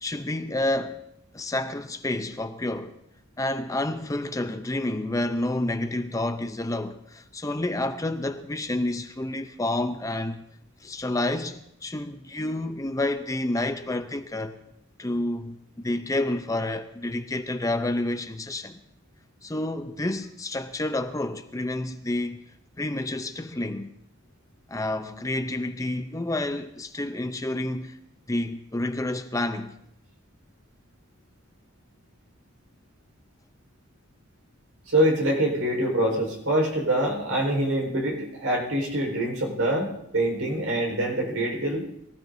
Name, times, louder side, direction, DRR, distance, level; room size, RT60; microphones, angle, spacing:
voice 1, 0.0-1.0 1.3-2.9 3.4-10.4 10.8-14.6 15.0-18.8 19.4-22.4 22.8-23.9 24.7-28.0 28.3-29.7, left 1 dB, 15° left, 0.5 m, -29 dB
voice 2, 34.9-41.8, right 1 dB, 80° right, 4.4 m, -25 dB
23.0 x 15.5 x 2.7 m
head